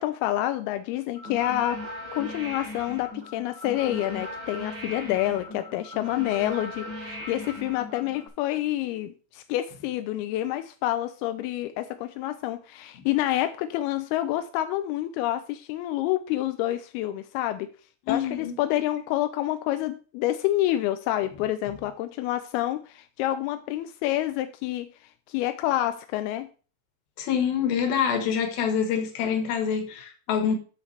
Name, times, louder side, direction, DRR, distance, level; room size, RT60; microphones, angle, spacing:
voice 1, 0.0-1.8 2.1-17.7 18.1-24.9 25.3-26.5, left 14 dB, 90° left, 2.5 m, -28 dB
sound 1, 1.2-8.3, left 2 dB, 55° right, 4.6 m, -38 dB
voice 2, 18.1-18.6 27.2-30.6, left 7 dB, 75° left, 3.2 m, -26 dB
13.0 x 6.3 x 3.3 m
omnidirectional pair, 4.4 m